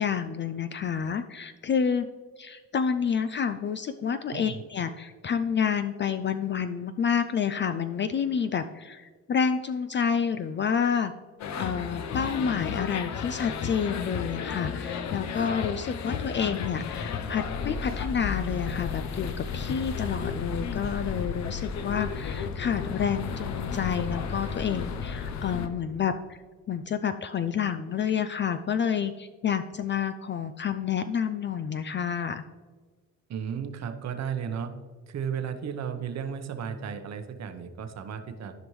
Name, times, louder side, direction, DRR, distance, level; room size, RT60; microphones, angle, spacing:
voice 1, 0.0-2.1 2.4-11.1 11.5-26.4 26.7-32.4, left 7 dB, 40° left, 10 dB, 0.4 m, -29 dB
sound 1, 11.4-25.7, left 6 dB, 65° left, 0.7 m, -33 dB
voice 2, 33.3-34.7 35.1-38.5, right 7 dB, 60° right, 7 dB, 1.0 m, -34 dB
13.5 x 5.2 x 3.2 m, 1.5 s
cardioid pair, 90°, 30 cm